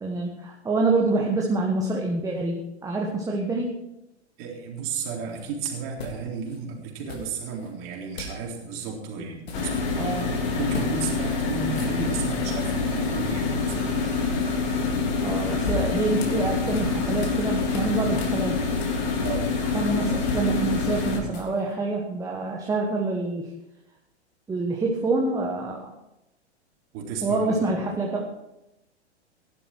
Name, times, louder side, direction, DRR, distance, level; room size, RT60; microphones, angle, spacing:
voice 1, 0.0-3.8 10.0-10.4 15.2-18.6 19.7-23.5 24.5-25.9 27.2-28.5, right 3 dB, 10° right, 0 dB, 1.3 m, -26 dB
voice 2, 4.4-9.7 10.5-14.3 19.2-19.5 26.9-27.9, right 5 dB, 35° right, -1 dB, 3.9 m, -33 dB
sound 1, 5.3-5.4 6.0-6.6 7.1-7.7 8.2-8.4 8.7-8.9 9.2-10.1 10.7-10.9 11.2-11.4 11.6-12.4 15.2-17.4 17.7-19.8 20.1-21.7, left 2 dB, 60° left, 3.3 m, -36 dB
sound 2, 9.5-21.2, left 4 dB, 35° left, 3.2 m, -26 dB
15.5 x 11.5 x 4.6 m, 0.90 s
figure-of-eight pair, 105°, 35 cm